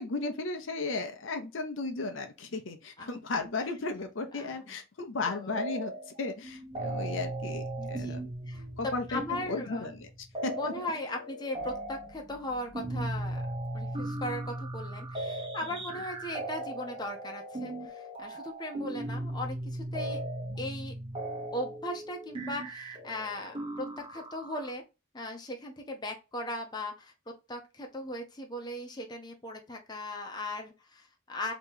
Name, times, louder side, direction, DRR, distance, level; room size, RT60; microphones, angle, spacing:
voice 1, 0.0-5.9 6.2-8.2 8.8-9.2 9.5-10.1 10.4-10.7, left 3 dB, 70° left, 0.7 m, -35 dB
voice 2, 3.0-3.5 4.3-4.8 5.3-5.6 7.8-8.2 8.5-9.9 10.5-13.4 13.7-20.2 20.6-20.9 21.5-24.8 25.1-27.1 27.5-31.5, left 1 dB, 20° left, 0.8 m, -38 dB
sound 1, 5.6-6.2 6.4-24.7, right 1 dB, 25° right, 0.9 m, -38 dB
3.0 x 2.9 x 3.6 m
head